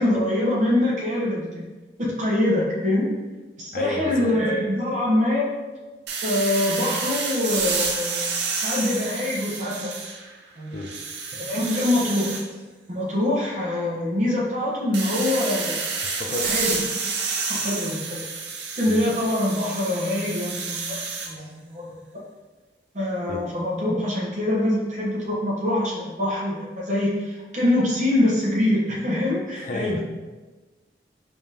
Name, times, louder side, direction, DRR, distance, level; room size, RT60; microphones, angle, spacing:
voice 1, 0.0-1.6 2.0-3.1 3.6-5.5 6.2-8.3 8.5-9.9 10.6-10.8 11.5-12.4 12.9-15.8 16.4-16.8 17.5-18.2 18.7-21.0 21.2-22.0 22.9-30.0, left 1 dB, 45° right, -4 dB, 0.9 m, -24 dB
voice 2, 3.7-4.3 10.7-10.9 16.0-16.6 18.9-19.0 23.3-23.5 29.6-30.0, left 2 dB, 50° left, 3 dB, 0.4 m, -32 dB
sound 1, 6.1-10.4 10.8-12.4 14.9-21.3, right 4 dB, 80° right, 0.6 m, -29 dB
3.5 x 3.4 x 2.8 m, 1.2 s
head